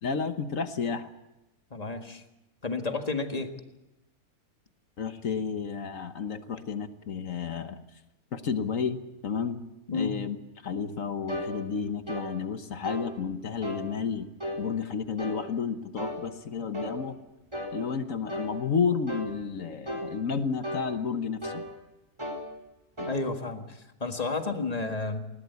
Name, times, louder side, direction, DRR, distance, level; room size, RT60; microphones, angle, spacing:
voice 1, 0.0-1.1 5.0-7.8 8.3-9.6 9.9-10.4 10.6-17.2 17.7-21.7 23.0-23.1, left 6 dB, 60° left, 9 dB, 1.4 m, -31 dB
voice 2, 1.7-2.2 2.6-3.5 9.9-10.1 23.1-25.2, left 3 dB, 25° left, 5 dB, 1.8 m, -31 dB
sound 1, 11.3-11.5 12.1-12.3 12.8-13.1 13.6-13.9 14.4-14.6 15.2-15.4 16.0-16.2 16.7-17.0 17.5-17.8 18.3-18.5 19.1-19.3 19.9-20.1 20.6-20.9 21.4-21.7 22.2-22.4 23.0-23.2, equal, 20° right, 3.8 m, -34 dB
20.5 x 19.0 x 8.2 m, 0.94 s
omnidirectional pair, 1.6 m